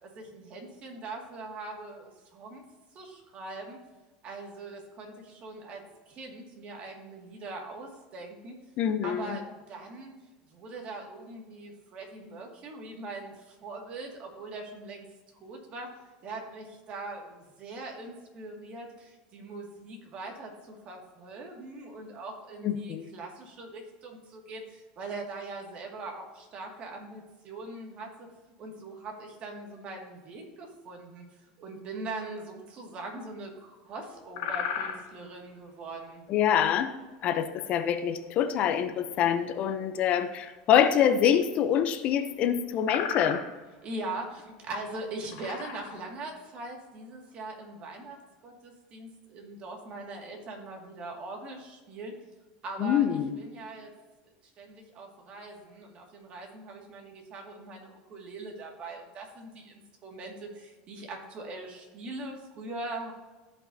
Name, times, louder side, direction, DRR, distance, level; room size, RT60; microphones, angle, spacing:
voice 1, 0.0-2.6 2.9-3.8 4.2-8.6 9.0-10.1 10.5-15.1 15.4-28.3 28.6-36.2 43.8-48.2 48.4-52.2 52.6-53.9 54.4-63.1, right 2 dB, 40° right, 1 dB, 2.2 m, -41 dB
voice 2, 8.8-9.4 22.6-23.1 36.3-36.9 37.2-43.4 52.8-53.4, left 9 dB, 45° left, 9 dB, 0.7 m, -25 dB
sound 1, 34.2-35.2 38.2-38.3 41.8-41.9 42.3-42.4 42.8-43.6 44.3-44.4 45.1-46.1, left 8 dB, 80° left, 2.3 m, -34 dB
14.0 x 5.5 x 2.8 m, 1.2 s
supercardioid pair, 125°, 3 cm